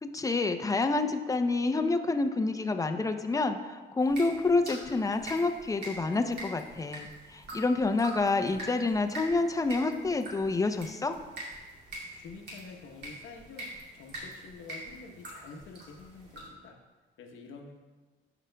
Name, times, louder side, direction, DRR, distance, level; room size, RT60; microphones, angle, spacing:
voice 1, 0.0-11.2, left 3 dB, 15° left, 7 dB, 0.5 m, -28 dB
sound 1, 4.0-16.5, right 1 dB, 60° right, 2.3 m, -44 dB
voice 2, 12.2-13.7 13.9-16.8 17.2-17.7, left 4 dB, 80° left, 3 dB, 1.0 m, -48 dB
12.5 x 5.0 x 2.2 m, 1.3 s
cardioid pair, 90°, 20 cm